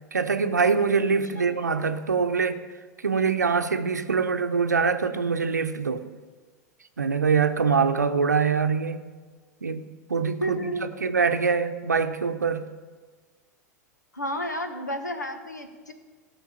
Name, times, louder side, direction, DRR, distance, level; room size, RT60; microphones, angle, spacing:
voice 1, 0.1-2.6 3.0-6.1 7.0-9.0 9.6-12.6, right 5 dB, 80° right, 0.8 m, -24 dB
voice 2, 10.4-11.0 14.1-15.9, equal, 85° left, 1.3 m, -31 dB
16.5 x 5.9 x 7.3 m
figure-of-eight pair, 90°, 9 cm